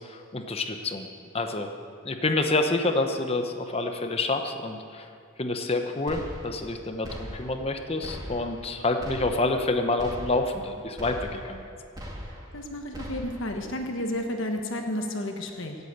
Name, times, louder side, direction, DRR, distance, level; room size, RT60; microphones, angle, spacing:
voice 1, 0.3-1.1 1.3-1.7 2.0-5.0 5.4-11.6, left 2 dB, 25° left, 5 dB, 0.8 m, -28 dB
sound 1, 6.1-6.7 7.0-7.7 8.0-8.7 9.0-9.7 10.0-10.7 11.0-11.7 12.0-12.6 12.9-13.6, equal, 15° right, 1.9 m, -40 dB
voice 2, 12.5-15.8, left 1 dB, 60° left, 3 dB, 1.3 m, -32 dB
16.5 x 8.2 x 8.1 m, 2.4 s
head